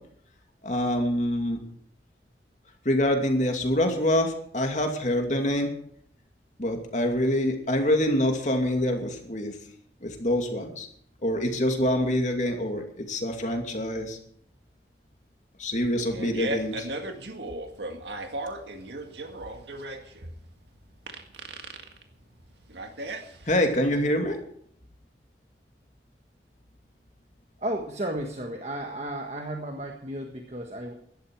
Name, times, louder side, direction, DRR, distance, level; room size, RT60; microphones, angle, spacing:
voice 1, 0.6-1.6 2.8-5.7 6.6-9.5 10.0-10.9 11.2-14.2 15.6-16.9 23.5-24.4, left 1 dB, 45° left, 3 dB, 2.5 m, -25 dB
Fart, 15.8-23.8, right 1 dB, 85° right, 1.9 m, -36 dB
voice 2, 27.6-30.9, right 1 dB, 40° right, 3 dB, 1.5 m, -33 dB
16.0 x 12.5 x 4.7 m, 0.65 s
head